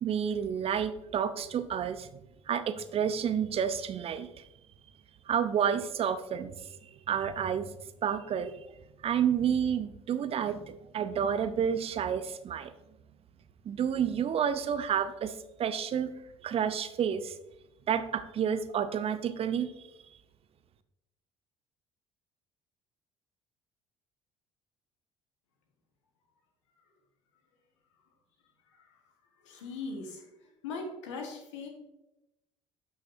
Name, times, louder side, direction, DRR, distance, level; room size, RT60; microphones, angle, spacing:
voice 1, 0.0-2.1 2.5-4.3 5.3-6.5 7.1-7.7 8.0-8.7 9.0-12.7 13.7-15.3 15.6-16.1 16.4-17.3 17.9-19.7, right 8 dB, 40° right, 12 dB, 0.6 m, -30 dB
voice 2, 29.4-30.2 30.6-31.7, left 3 dB, 70° left, 3 dB, 1.3 m, -39 dB
11.5 x 5.7 x 2.7 m, 0.91 s
figure-of-eight pair, 50°, 16 cm